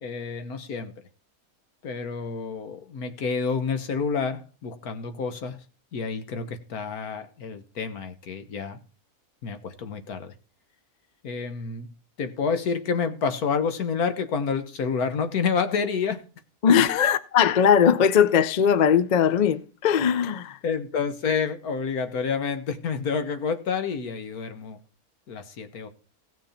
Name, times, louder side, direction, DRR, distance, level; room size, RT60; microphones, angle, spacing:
voice 1, 0.0-0.9 1.8-5.6 5.9-8.8 9.4-10.3 11.2-11.9 12.2-16.3 20.6-24.8 25.3-25.9, left 5 dB, 75° left, 1.7 m, -29 dB
voice 2, 16.6-20.6, left 8 dB, 50° left, 0.5 m, -20 dB
16.5 x 6.4 x 4.3 m
omnidirectional pair, 1.6 m